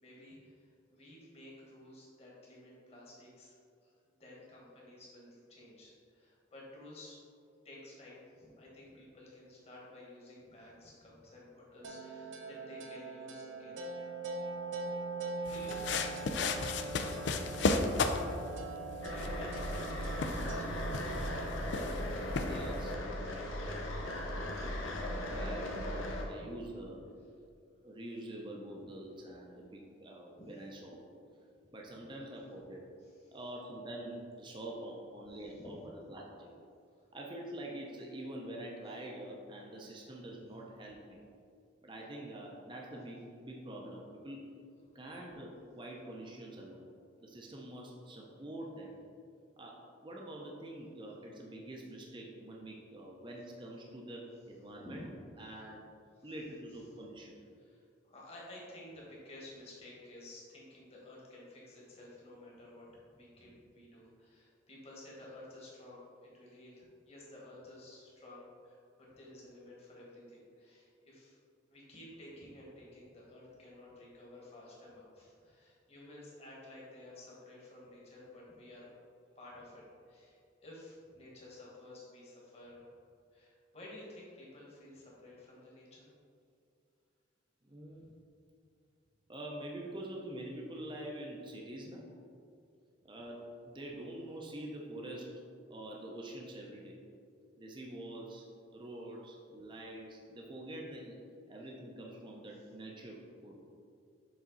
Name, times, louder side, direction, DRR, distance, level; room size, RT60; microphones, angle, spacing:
voice 1, 0.0-7.2 7.6-14.2 14.9-15.1 15.5-15.9 16.9-17.6 19.1-21.1 30.4-30.5 33.0-33.4 35.6-35.7 54.8-55.0 55.5-55.7 56.1-56.3 57.6-62.9 63.1-71.4 71.7-78.9 79.3-82.9 83.3-86.1, left 1 dB, 30° left, -5 dB, 1.4 m, -53 dB
sound 1, 11.8-21.4, right 3 dB, 75° right, 0.6 m, -42 dB
sound 2, 15.5-22.9, left 3 dB, 65° left, 0.4 m, -35 dB
sound 3, 19.0-26.2, left 1 dB, 90° left, 0.9 m, -38 dB
voice 2, 22.4-23.3 25.1-25.8 26.3-27.0 27.8-31.0 31.7-32.9 33.3-36.5 37.1-41.2 41.8-44.4 44.9-46.8 47.2-49.0 49.6-55.1 55.4-55.9 56.2-57.3 87.6-88.1 89.3-92.1 93.0-95.3 95.7-97.0 97.6-98.5 98.7-101.2 101.5-103.6, right 1 dB, 25° right, -2 dB, 0.6 m, -45 dB
7.2 x 3.6 x 3.9 m, 2.4 s
head